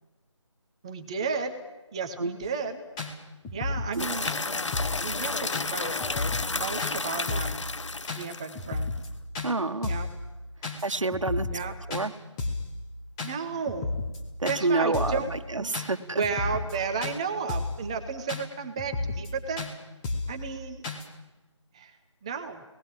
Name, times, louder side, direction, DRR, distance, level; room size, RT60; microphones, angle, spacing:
voice 1, 0.8-1.5 1.9-2.8 3.5-4.3 5.0-6.0 6.6-7.7 8.2-8.9 9.8-10.1 11.5-11.7 13.2-14.0 14.5-15.7 16.1-19.7 20.3-20.8 21.7-22.0 22.2-22.6, right 5 dB, 10° right, 7 dB, 0.9 m, -33 dB
sound 1, 2.4-2.5 3.0-3.1 3.4-4.0 4.2-4.4 4.7-5.0 5.5-5.7 6.0-6.5 6.8-6.9 7.3-7.6 8.1-8.2 8.6-9.1 9.4-9.5 9.8-10.1 10.6-10.8 11.1-11.6 11.9-12.1 12.4-12.7 13.2-13.3 13.7-14.2 14.5-14.6 14.9-15.2 15.7-15.9 16.2-16.7 17.0-17.2 17.5-17.8 18.3-18.4 18.8-19.3 19.6-19.7 20.0-20.4 20.8-21.1, left 3 dB, 10° left, 1.2 m, -32 dB
sound 2, 4.0-8.8, left 3 dB, 70° left, 0.9 m, -32 dB
voice 2, 9.4-9.9 10.8-11.5 11.9-12.1 14.4-16.2, right 3 dB, 80° right, 6 dB, 1.5 m, -28 dB
27.0 x 19.0 x 7.6 m, 1.1 s
figure-of-eight pair, 165°, 16 cm